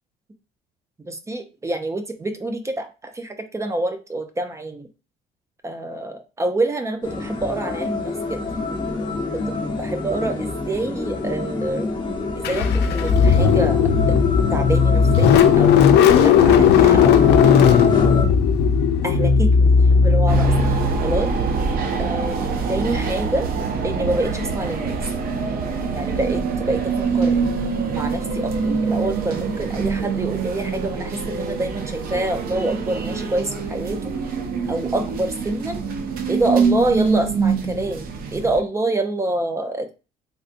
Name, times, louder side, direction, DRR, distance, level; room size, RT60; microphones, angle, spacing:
voice 1, 1.1-4.9 5.6-8.4 9.5-11.9 12.3-13.8 14.5-15.9 16.2-17.4 19.0-21.3 22.0-22.4 22.7-23.5 23.8-25.0 25.9-26.4 26.7-27.4 27.9-28.5 28.8-34.1 34.7-35.8 36.3-39.9, right 2 dB, 15° right, 7 dB, 0.5 m, -26 dB
sound 1, 7.0-18.2, left 3 dB, 25° left, 0.9 m, -26 dB
Car / Engine starting, 12.4-21.2, left 6 dB, 75° left, 0.5 m, -15 dB
sound 2, 20.3-38.6, right 5 dB, 60° right, 0.6 m, -24 dB
3.4 x 2.6 x 2.5 m, 0.31 s
cardioid pair, 110°, 17 cm